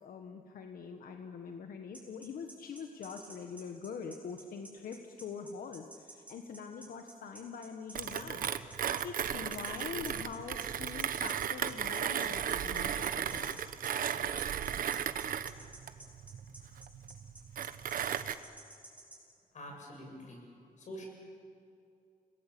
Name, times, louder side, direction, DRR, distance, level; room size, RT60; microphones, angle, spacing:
voice 1, 0.0-8.5 9.0-13.6, left 6 dB, 85° left, 5 dB, 1.5 m, -44 dB
sound 1, 1.9-19.2, right 2 dB, 10° right, 7.4 m, -52 dB
Mechanisms, 7.9-18.3, right 9 dB, 80° right, 1.0 m, -35 dB
voice 2, 19.5-20.4 20.8-21.1, equal, 55° left, 1 dB, 7.5 m, -46 dB
30.0 x 19.5 x 8.6 m, 2.6 s
wide cardioid pair, 155°, 14 cm